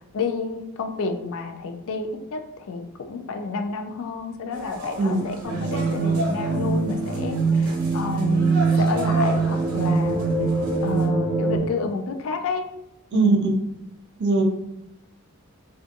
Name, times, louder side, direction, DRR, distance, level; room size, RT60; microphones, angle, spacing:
voice 1, 0.1-10.2 10.8-12.6 13.1-13.4, left 4 dB, 65° left, 6 dB, 0.4 m, -30 dB
sound 1, 4.5-11.1, equal, 70° right, 0.9 m, -34 dB
sound 2, 5.4-11.6, right 4 dB, 20° right, 0.8 m, -23 dB
voice 2, 13.1-13.5 14.2-14.4, right 3 dB, 50° right, 3 dB, 0.5 m, -20 dB
2.5 x 2.4 x 2.4 m, 0.89 s
head